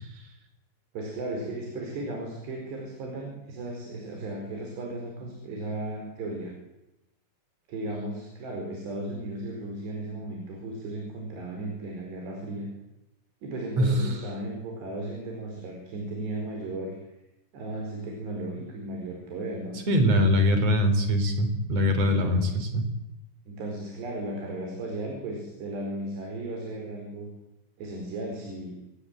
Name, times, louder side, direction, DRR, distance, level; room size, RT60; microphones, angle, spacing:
voice 1, 0.9-6.6 7.7-12.7 13.4-17.0 17.5-19.8 22.0-22.5 23.5-27.3 27.8-28.8, right 2 dB, 65° right, 1 dB, 7.0 m, -35 dB
voice 2, 13.8-14.2 19.9-22.8, left 1 dB, 35° right, 8 dB, 4.6 m, -23 dB
28.0 x 18.5 x 9.3 m, 0.93 s
omnidirectional pair, 5.2 m